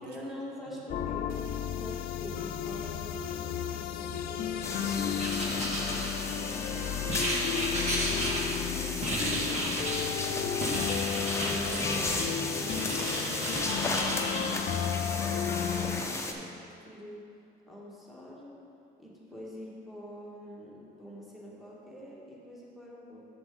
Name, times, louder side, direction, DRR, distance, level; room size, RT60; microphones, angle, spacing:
voice 1, 0.0-1.4 1.7-5.7 8.5-10.1 11.4-14.6 15.1-17.2 17.7-18.6 19.0-23.2, equal, ahead, -6 dB, 1.7 m, -45 dB
voice 2, 0.8-1.2 6.7-8.3 10.2-11.0, right 1 dB, 85° right, 0 dB, 1.2 m, -46 dB
sound 1, 0.9-16.0, left 8 dB, 60° left, 0.4 m, -33 dB
sound 2, 4.6-16.3, left 2 dB, 15° left, 0.7 m, -35 dB
Writing, 5.2-6.5 7.1-8.7 9.0-10.1 10.6-12.3 12.6-14.5, right 1 dB, 40° right, 1.6 m, -33 dB
7.8 x 6.9 x 3.8 m, 2.6 s
cardioid pair, 110°, 17 cm